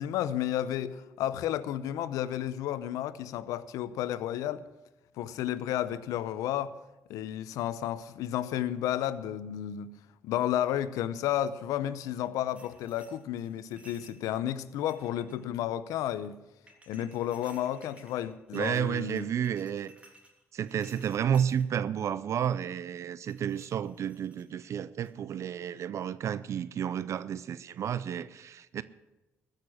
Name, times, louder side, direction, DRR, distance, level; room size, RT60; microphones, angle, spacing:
voice 1, 0.0-4.6 5.2-6.7 7.1-9.9 10.2-16.4 16.9-19.3, left 11 dB, 85° left, 0.7 m, -32 dB
sound 1, 12.2-14.2 14.7-15.5 16.7-21.6 23.2-24.7 25.0-25.3, right 1 dB, 20° right, 3.1 m, -58 dB
voice 2, 18.5-19.9 20.5-28.8, right 9 dB, 60° right, 0.5 m, -31 dB
15.0 x 6.6 x 8.5 m
cardioid pair, 80°, 6 cm